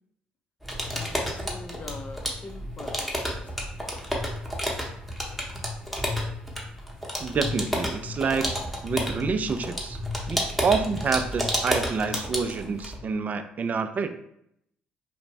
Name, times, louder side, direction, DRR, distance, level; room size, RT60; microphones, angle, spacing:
sound 1, 0.6-13.0, equal, ahead, 0.8 m, -31 dB
voice 1, 0.9-3.6, left 3 dB, 40° left, 5 dB, 0.4 m, -43 dB
voice 2, 7.2-8.5 8.8-10.0 10.3-14.1, right 5 dB, 40° right, 9 dB, 0.3 m, -27 dB
2.4 x 2.0 x 3.2 m, 0.74 s
hypercardioid pair, 55°, 4 cm